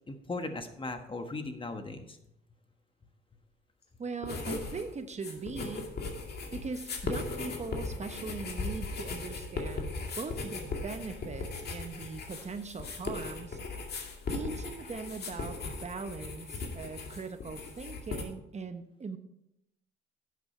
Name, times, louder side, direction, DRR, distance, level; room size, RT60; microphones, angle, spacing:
voice 1, 0.1-2.2, left 3 dB, 25° left, 7 dB, 1.3 m, -38 dB
voice 2, 4.0-5.9 6.5-13.6 13.9-19.2, right 4 dB, 35° right, 8 dB, 0.9 m, -40 dB
sound 1, 4.2-4.9 5.1-18.2, left 3 dB, 55° left, 2.2 m, -38 dB
11.0 x 8.4 x 4.4 m, 0.81 s
cardioid pair, 90°, 20 cm